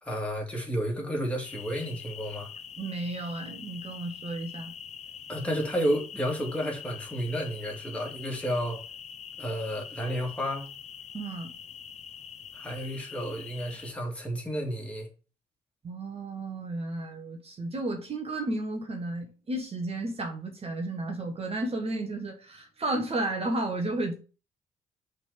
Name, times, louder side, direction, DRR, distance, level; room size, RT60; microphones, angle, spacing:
voice 1, 0.0-2.5 5.3-8.8 9.4-10.7 12.5-15.1, equal, 5° left, 2.4 m, -31 dB
sound 1, 1.4-13.9, left 8 dB, 40° left, 0.7 m, -44 dB
voice 2, 2.8-4.7 11.1-11.5 15.8-24.1, right 2 dB, 35° right, 1.4 m, -33 dB
5.7 x 3.8 x 5.0 m
figure-of-eight pair, 40°, 17 cm